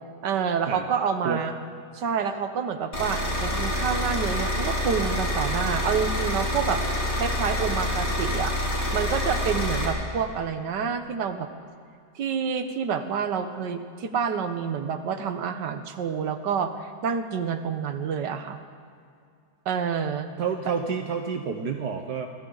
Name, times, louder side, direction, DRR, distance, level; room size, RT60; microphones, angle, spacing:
voice 1, 0.2-1.5 1.9-6.8 7.2-8.5 8.9-11.5 12.1-18.6 19.6-20.3, right 6 dB, 90° right, 8 dB, 1.7 m, -28 dB
sound 1, 2.9-9.9, left 1 dB, 70° left, 6.4 m, -27 dB
voice 2, 20.4-22.3, right 6 dB, 70° right, 4 dB, 1.7 m, -29 dB
28.0 x 26.0 x 4.0 m, 2.4 s
omnidirectional pair, 1.8 m